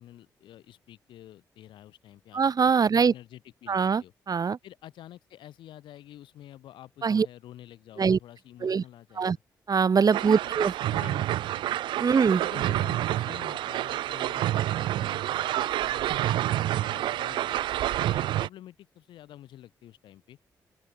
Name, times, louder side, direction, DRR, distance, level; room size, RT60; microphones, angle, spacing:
voice 1, 0.0-2.4 2.8-4.1 4.6-9.3 10.1-10.3 10.7-11.3 12.0-17.7 18.1-20.4, left 12 dB, 80° left, 7.3 m, -49 dB
voice 2, 2.3-3.1 3.7-4.6 7.0-7.3 8.0-8.2 8.6-8.8 9.2-9.4 9.7-10.7 12.0-12.4, right 6 dB, 50° right, 1.2 m, -23 dB
sound 1, 10.1-18.5, right 13 dB, 75° right, 0.4 m, -28 dB
open air
hypercardioid pair, 40°, 8 cm